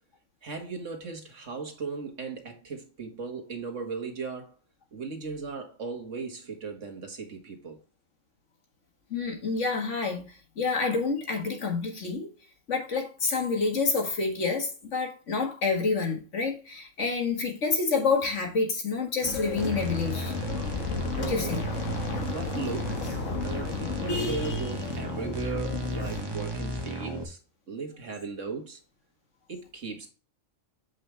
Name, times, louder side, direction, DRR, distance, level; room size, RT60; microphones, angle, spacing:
voice 1, 0.4-4.5 4.9-7.8 21.2-21.6 22.2-23.0 23.4-27.4 27.7-28.8 29.5-30.1, right 5 dB, 75° right, 2.0 m, -37 dB
voice 2, 9.1-10.3 10.6-12.3 12.7-20.3 21.3-21.6, left 4 dB, 75° left, 2.1 m, -28 dB
sound 1, 19.2-26.2, left 4 dB, 90° left, 1.5 m, -33 dB
sound 2, 19.6-27.2, right 1 dB, 20° right, 1.2 m, -34 dB
7.8 x 5.4 x 3.3 m
omnidirectional pair, 1.3 m